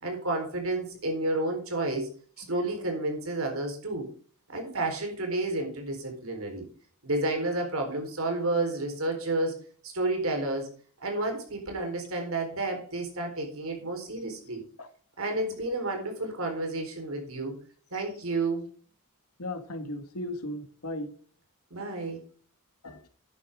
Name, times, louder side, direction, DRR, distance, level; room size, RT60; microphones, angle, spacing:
voice 1, 0.0-2.1 2.4-4.1 4.5-6.7 7.0-9.6 9.8-10.7 11.0-14.6 15.2-17.5 17.9-18.6 21.7-22.2, right 2 dB, 70° right, 4.3 m, -31 dB
voice 2, 19.4-21.1 22.8-23.1, left 1 dB, 80° left, 1.9 m, -36 dB
12.0 x 9.8 x 3.7 m
head